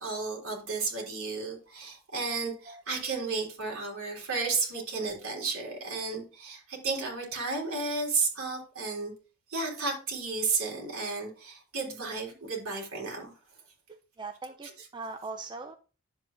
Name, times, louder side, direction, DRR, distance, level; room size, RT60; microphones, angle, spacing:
voice 1, 0.0-9.1 9.5-13.3 14.8-14.9, right 4 dB, 65° right, -1 dB, 3.6 m, -33 dB
voice 2, 14.2-15.8, right 3 dB, 20° right, 6 dB, 0.4 m, -40 dB
10.5 x 7.6 x 2.5 m, 0.35 s
head